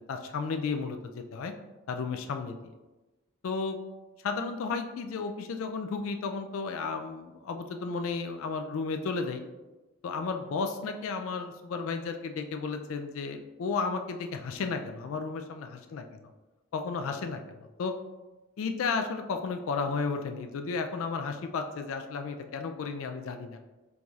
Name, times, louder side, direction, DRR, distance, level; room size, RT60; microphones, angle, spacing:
voice 1, 0.0-1.5 1.9-2.7 3.4-3.8 4.2-9.4 10.0-16.0 16.7-17.9 18.6-23.6, left 4 dB, 70° left, 6 dB, 0.3 m, -33 dB
4.6 x 4.0 x 2.3 m, 1.1 s
head